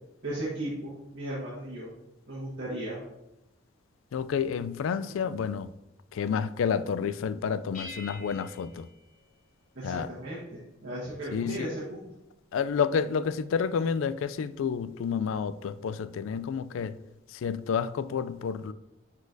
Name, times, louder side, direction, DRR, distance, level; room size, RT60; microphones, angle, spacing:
voice 1, 0.2-1.9 2.3-3.0 9.7-12.1, right 1 dB, 60° right, 1.5 m, -36 dB
voice 2, 4.1-5.7 6.1-8.9 9.8-10.1 11.3-11.7 12.5-17.0 17.3-18.7, left 6 dB, 75° left, 0.3 m, -30 dB
sound 1, 7.7-10.0, left 2 dB, 40° left, 1.8 m, -47 dB
9.5 x 4.1 x 2.7 m
head